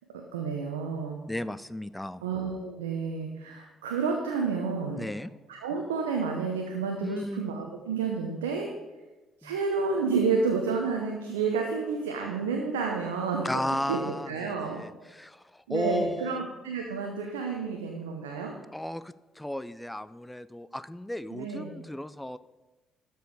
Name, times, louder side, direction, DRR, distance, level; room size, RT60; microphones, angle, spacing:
voice 1, 0.1-1.2 2.2-5.1 5.5-8.7 9.4-13.5 13.9-14.8 15.7-18.5 21.3-21.8, right 5 dB, 85° right, 1 dB, 0.8 m, -30 dB
voice 2, 1.3-2.2 5.0-5.3 7.0-7.4 9.4-9.5 13.4-16.4 18.7-22.4, left 1 dB, 10° left, 15 dB, 0.4 m, -34 dB
12.5 x 4.7 x 4.7 m, 1.1 s
hypercardioid pair, 50°, 0 cm